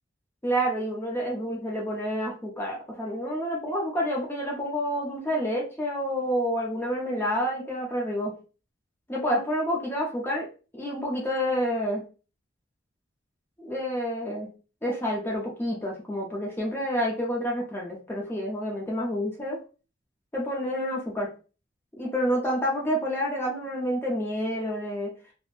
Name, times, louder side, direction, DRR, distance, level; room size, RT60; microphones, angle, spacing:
voice 1, 0.4-8.3 9.1-10.5 10.7-12.0 13.6-14.5 14.8-19.6 20.3-21.3 22.0-25.1, equal, 10° left, -3 dB, 0.5 m, -28 dB
3.2 x 2.1 x 2.4 m, 0.35 s
head